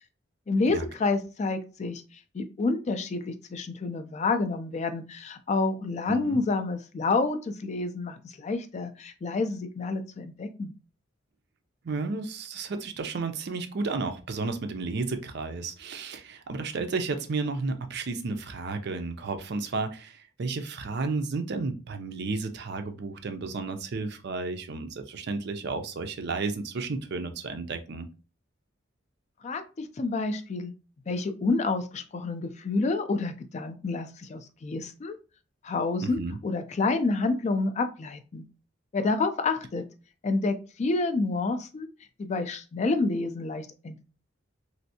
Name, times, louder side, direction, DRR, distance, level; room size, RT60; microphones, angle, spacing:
voice 1, 0.5-10.7 29.4-30.7 31.1-35.2 35.6-38.5 38.9-39.8 40.2-41.9 42.2-44.1, left 3 dB, 35° left, 0.3 m, -29 dB
voice 2, 6.1-6.4 11.8-28.1 36.0-36.4, right 3 dB, 60° right, 0.5 m, -32 dB
3.2 x 2.6 x 2.7 m
head